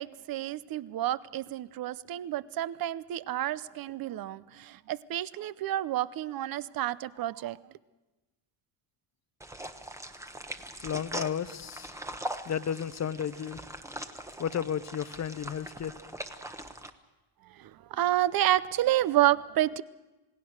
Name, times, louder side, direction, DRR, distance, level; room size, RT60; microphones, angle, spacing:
voice 1, 0.0-7.6 17.6-19.8, right 13 dB, 45° right, 0.7 m, -29 dB
sound 1, 9.4-16.9, right 1 dB, 5° right, 1.0 m, -41 dB
voice 2, 10.8-11.9 12.5-13.6 14.4-15.9, left 8 dB, 35° left, 0.8 m, -33 dB
27.5 x 18.5 x 6.5 m
cardioid pair, 140°, 48 cm